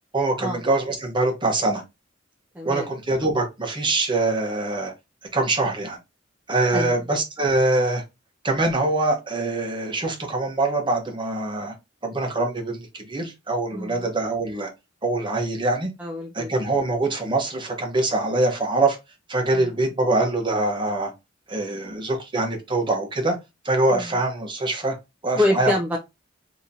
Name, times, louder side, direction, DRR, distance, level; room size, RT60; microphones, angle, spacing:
voice 1, 0.1-1.8 2.6-4.9 5.3-6.0 6.5-8.0 8.4-11.7 12.0-14.7 15.0-15.9 16.3-19.0 19.3-21.1 21.5-23.4 23.6-25.0 25.2-25.7, right 2 dB, 25° right, 0.9 m, -24 dB
voice 2, 2.6-2.9 6.7-7.0 13.7-14.0 16.0-16.5 19.6-19.7 23.9-24.0 25.4-26.0, left 1 dB, 10° right, 0.5 m, -25 dB
3.7 x 2.8 x 2.7 m
head